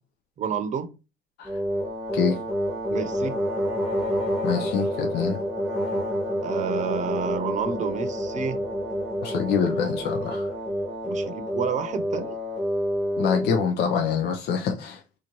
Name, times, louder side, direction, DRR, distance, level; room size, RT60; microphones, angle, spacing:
voice 1, 0.4-0.9 2.9-3.4 6.4-8.6 11.0-12.4, right 6 dB, 45° right, 0.7 m, -29 dB
sound 1, 1.4-13.7, equal, ahead, 1.0 m, -28 dB
voice 2, 4.4-5.4 9.2-10.5 13.2-15.0, left 6 dB, 75° left, 0.6 m, -25 dB
4.1 x 2.5 x 3.0 m
cardioid pair, 110°, 17 cm